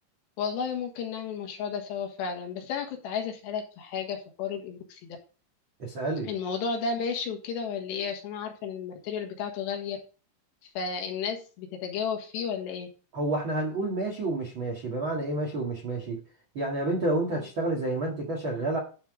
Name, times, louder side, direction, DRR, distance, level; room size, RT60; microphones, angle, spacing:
voice 1, 0.4-5.2 6.2-10.0 10.7-12.9, left 6 dB, 70° left, 3 dB, 3.4 m, -33 dB
voice 2, 5.8-6.3 13.1-16.2 16.5-18.8, right 2 dB, 65° right, -1 dB, 1.2 m, -29 dB
11.5 x 4.0 x 5.0 m, 0.35 s
omnidirectional pair, 5.4 m